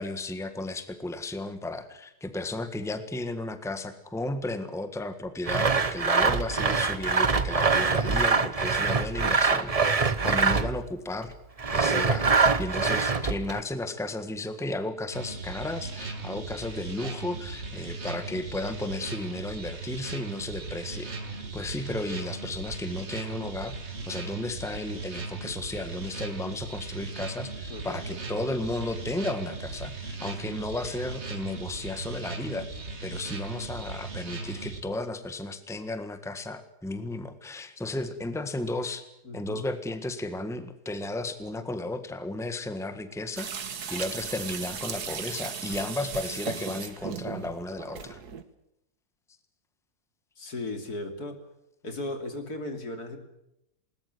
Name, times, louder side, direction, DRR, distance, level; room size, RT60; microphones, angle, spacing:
voice 1, 0.0-11.3 11.7-23.7 24.1-32.7 33.0-39.0 39.3-48.2, left 2 dB, ahead, 9 dB, 1.6 m, -34 dB
Sawing, 5.5-10.9 11.6-13.6, right 4 dB, 25° right, 0.9 m, -24 dB
sound 1, 15.1-34.8, right 3 dB, 40° right, 2.5 m, -38 dB
voice 2, 39.2-39.7 50.4-51.4 51.8-53.2, left 2 dB, 70° left, 6 dB, 3.5 m, -36 dB
sound 2, 43.4-48.4, right 7 dB, 75° right, 2.0 m, -36 dB
20.5 x 19.5 x 9.6 m, 0.83 s
omnidirectional pair, 1.7 m